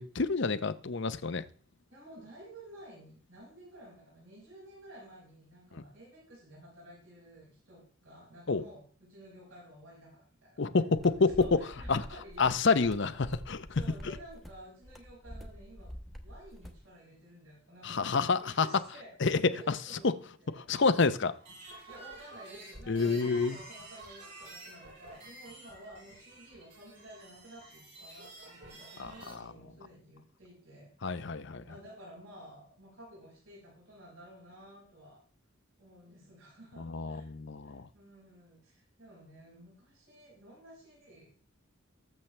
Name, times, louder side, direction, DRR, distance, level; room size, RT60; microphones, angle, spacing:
voice 1, 0.0-1.4 5.7-5.8 8.5-8.6 10.6-11.4 11.9-12.0 12.4-13.1 13.5-14.1 17.8-18.7 19.2-19.4 19.7-19.8 20.0-20.2 20.5-21.3 22.9-23.6 29.0-29.4 31.0-31.6 36.8-37.9, left 4 dB, 55° left, 0.7 m, -28 dB
voice 2, 1.9-10.6 11.2-13.2 13.7-15.9 16.2-19.1 19.5-20.1 20.4-20.7 21.7-35.2 35.8-37.3 37.6-41.3, right 1 dB, 70° right, 5.8 m, -53 dB
sound 1, 10.9-16.9, equal, ahead, 1.2 m, -47 dB
sound 2, 21.3-29.3, right 2 dB, 55° right, 7.0 m, -50 dB
19.0 x 7.4 x 3.3 m
head